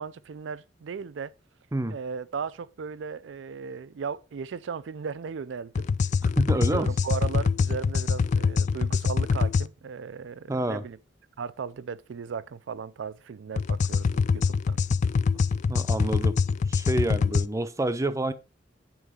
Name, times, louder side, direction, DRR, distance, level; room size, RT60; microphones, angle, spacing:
voice 1, 0.0-1.3 1.9-5.9 6.5-11.0 11.4-14.8, right 6 dB, 85° right, 0.4 m, -36 dB
sound 1, 5.8-9.7 13.6-17.5, left 5 dB, 40° left, 0.3 m, -24 dB
voice 2, 6.4-6.9 10.5-10.8 15.7-16.4 16.7-18.3, right 1 dB, 15° right, 0.6 m, -28 dB
8.9 x 3.9 x 4.9 m
head